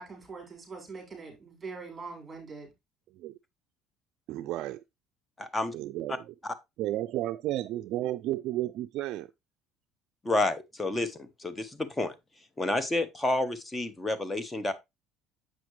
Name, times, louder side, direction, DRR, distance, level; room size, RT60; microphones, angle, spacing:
voice 1, 0.0-2.7, right 4 dB, 20° right, 4.2 m, -43 dB
voice 2, 4.3-4.8 5.7-6.3 6.8-9.3, right 14 dB, 65° right, 0.3 m, -32 dB
voice 3, 5.4-5.7 6.1-6.2 6.4-6.5 10.2-12.1 12.6-14.7, left 2 dB, 15° left, 1.1 m, -30 dB
7.8 x 5.9 x 3.1 m
supercardioid pair, 90°, 0 cm